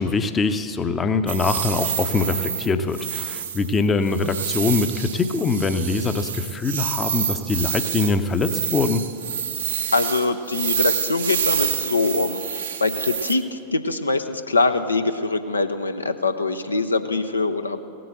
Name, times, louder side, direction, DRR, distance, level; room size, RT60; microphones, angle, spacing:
voice 1, 0.0-9.0, left 4 dB, 20° left, 10 dB, 0.7 m, -23 dB
sound 1, 1.3-13.3, right 8 dB, 65° right, 0.8 m, -28 dB
voice 2, 9.9-17.8, left 3 dB, 80° left, 8 dB, 0.5 m, -23 dB
16.5 x 7.8 x 7.8 m, 2.7 s
figure-of-eight pair, 90°, 0 cm